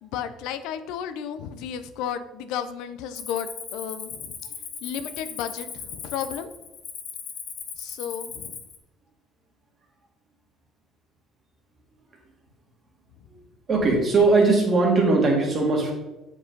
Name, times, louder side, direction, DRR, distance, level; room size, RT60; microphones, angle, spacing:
voice 1, 0.0-4.4 4.8-6.5 7.8-8.6, left 8 dB, 90° left, 11 dB, 0.5 m, -33 dB
Cricket, 3.1-8.8, left 6 dB, 50° left, 1.0 m, -38 dB
voice 2, 13.7-15.9, right 3 dB, 30° right, -1 dB, 1.9 m, -20 dB
7.7 x 4.7 x 3.9 m, 1.0 s
cardioid pair, 140°, 0 cm